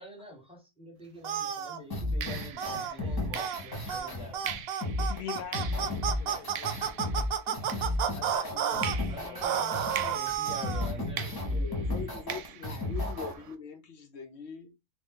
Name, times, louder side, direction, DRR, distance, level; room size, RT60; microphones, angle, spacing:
voice 1, 0.0-2.6 2.9-4.4 9.1-11.6, equal, 5° right, 0.9 m, -46 dB
sound 1, 1.0-1.3 2.2-8.4 8.8-13.5, right 10 dB, 90° right, 1.1 m, -43 dB
sound 2, 1.2-1.8 2.6-2.9 3.4-3.6 3.9-4.1 4.3-8.9 9.4-10.9, right 8 dB, 75° right, 0.5 m, -31 dB
sound 3, 1.9-13.3, left 2 dB, 25° left, 0.5 m, -33 dB
voice 2, 5.0-7.0 7.5-7.6 8.1-9.5, left 9 dB, 85° left, 1.1 m, -44 dB
voice 3, 11.2-14.7, left 5 dB, 60° left, 0.7 m, -43 dB
3.0 x 2.6 x 3.6 m
omnidirectional pair, 1.6 m